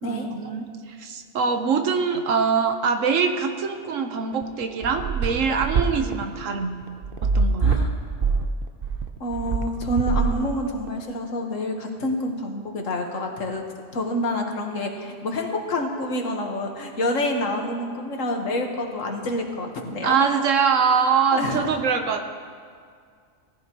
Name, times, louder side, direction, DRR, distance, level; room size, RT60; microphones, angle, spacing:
voice 1, 0.0-6.8 7.2-7.8 20.0-22.2, right 6 dB, 85° right, 6 dB, 1.3 m, -23 dB
sound 1, 4.3-10.9, right 5 dB, 50° right, 0.8 m, -24 dB
voice 2, 7.6-7.9 9.2-13.6 13.9-20.2 21.3-21.6, left 1 dB, 85° left, 2 dB, 1.7 m, -27 dB
19.0 x 14.5 x 3.0 m, 2.1 s
omnidirectional pair, 1.3 m